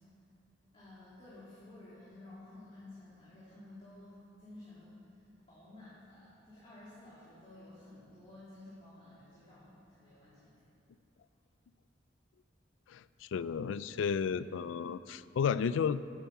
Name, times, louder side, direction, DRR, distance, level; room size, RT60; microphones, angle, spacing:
voice 1, 0.7-4.9 5.5-10.6, left 2 dB, 30° left, -10 dB, 2.7 m, -53 dB
voice 2, 12.9-16.0, left 6 dB, 80° left, 16 dB, 0.3 m, -33 dB
10.5 x 8.8 x 7.3 m, 2.5 s
head